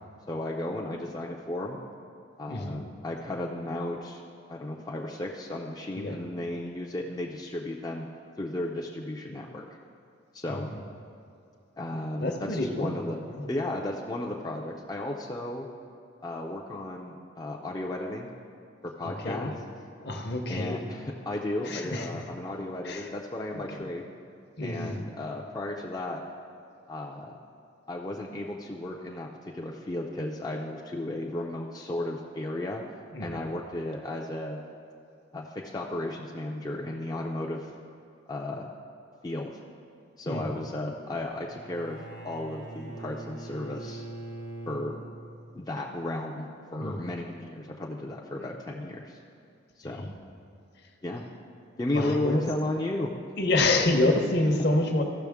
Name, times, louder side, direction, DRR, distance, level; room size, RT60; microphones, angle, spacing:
voice 1, 0.3-1.8 2.4-4.2 4.5-8.1 8.4-9.6 10.3-10.7 11.7-13.2 13.5-15.7 16.2-18.3 18.8-19.5 20.5-24.0 24.6-26.2 26.9-27.3 27.9-29.3 29.5-32.8 33.2-34.6 35.3-37.7 38.3-38.7 39.2-39.5 40.2-44.0 44.7-44.9 45.5-49.2 49.8-50.1 51.0-51.3 51.8-53.1, left 1 dB, 20° left, -2 dB, 0.4 m, -34 dB
voice 2, 2.5-2.8 5.9-6.2 10.5-10.8 12.2-13.0 13.3-13.5 19.0-19.6 20.0-20.8 21.6-22.2 22.8-23.1 23.5-23.9 24.6-25.0 33.1-33.4 40.3-40.5 46.8-47.0 49.8-50.2 51.9-52.5 53.4-55.0, left 2 dB, 50° left, 3 dB, 0.8 m, -28 dB
Bowed string instrument, 41.5-45.6, right 2 dB, 65° right, 0.8 m, -42 dB
14.5 x 6.4 x 3.5 m, 2.4 s
head